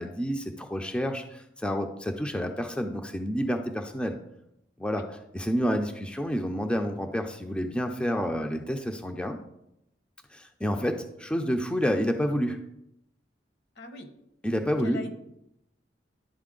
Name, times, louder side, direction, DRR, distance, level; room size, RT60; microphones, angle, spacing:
voice 1, 0.0-4.2 4.8-5.0 5.3-9.4 10.3-12.6 14.4-15.0, equal, 5° left, 4 dB, 0.4 m, -29 dB
voice 2, 13.8-14.1 14.8-15.2, left 2 dB, 65° left, 7 dB, 1.0 m, -40 dB
11.0 x 4.0 x 3.8 m, 0.81 s
head